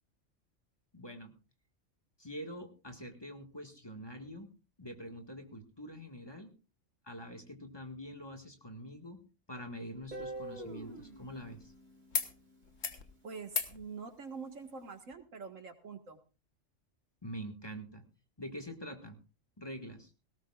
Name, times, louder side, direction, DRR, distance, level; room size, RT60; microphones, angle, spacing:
voice 1, 0.9-1.3 2.2-4.5 4.8-6.5 7.0-11.7 17.2-18.0 18.4-19.2 19.6-20.1, equal, 20° left, 4 dB, 1.8 m, -45 dB
sound 1, 9.9-11.7 12.1-12.3 12.6-13.0 13.5-13.8 15.1-15.2, left 6 dB, 75° left, 1.8 m, -39 dB
Guitar, 10.1-13.1, right 2 dB, 35° right, 3.4 m, -46 dB
voice 2, 13.2-16.2, right 5 dB, 80° right, 7 dB, 2.1 m, -45 dB
19.0 x 17.5 x 2.4 m, 0.32 s
omnidirectional pair, 1.3 m